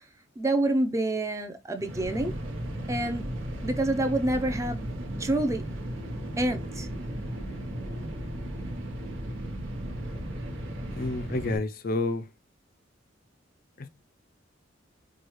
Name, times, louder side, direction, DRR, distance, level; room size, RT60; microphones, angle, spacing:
voice 1, 0.4-2.3 2.9-3.3 3.6-4.9 5.2-5.6 6.4-6.9, right 1 dB, 15° right, 0.5 m, -27 dB
sound 1, 1.8-11.6, right 1 dB, 85° right, 1.0 m, -35 dB
voice 2, 11.0-12.2, left 3 dB, 50° left, 0.4 m, -29 dB
4.8 x 2.3 x 3.0 m
head